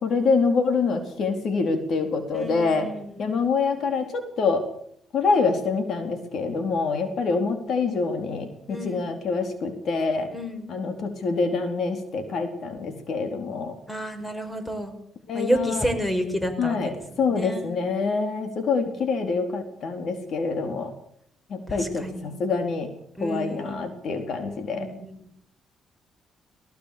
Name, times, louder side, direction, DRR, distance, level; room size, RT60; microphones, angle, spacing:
voice 1, 0.0-2.9 3.2-4.6 5.1-10.3 10.7-13.7 15.3-15.9 16.6-20.9 21.5-22.9 23.2-24.9, left 4 dB, 65° left, 7 dB, 4.1 m, -26 dB
voice 2, 2.3-3.2 8.7-9.1 10.3-10.7 13.9-14.9 15.3-16.9 17.3-17.8 21.7-22.4 23.2-23.9 24.5-25.3, equal, 10° left, 8 dB, 5.3 m, -30 dB
18.5 x 18.5 x 8.7 m, 0.69 s
cardioid pair, 90°, 0 cm